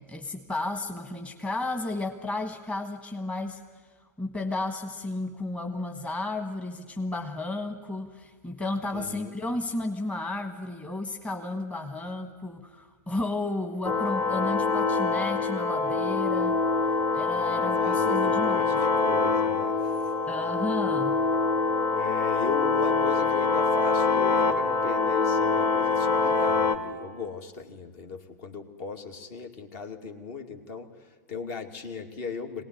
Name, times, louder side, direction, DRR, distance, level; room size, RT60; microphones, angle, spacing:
voice 1, 0.0-3.6 4.2-16.6 17.1-18.8 20.3-21.2, left 2 dB, 15° left, 5 dB, 1.5 m, -33 dB
voice 2, 8.9-9.3 17.8-20.1 21.9-32.6, left 5 dB, 50° left, 5 dB, 2.4 m, -37 dB
sound 1, 13.8-26.8, left 4 dB, 35° left, 1.8 m, -25 dB
23.5 x 18.5 x 9.6 m, 1.5 s
hypercardioid pair, 105°, 10 cm